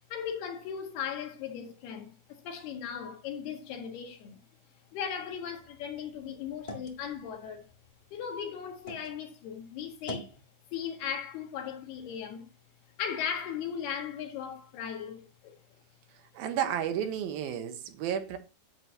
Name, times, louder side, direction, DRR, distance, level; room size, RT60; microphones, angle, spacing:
voice 1, 0.1-4.4 4.9-7.7 8.1-10.4 10.7-12.5 13.0-15.6, left 8 dB, 85° left, 3.8 m, -37 dB
sound 1, 5.3-9.1 9.5-10.4, left 2 dB, 60° left, 0.4 m, -46 dB
voice 2, 16.3-18.4, right 9 dB, 75° right, 2.8 m, -32 dB
10.5 x 8.8 x 2.8 m
omnidirectional pair, 4.4 m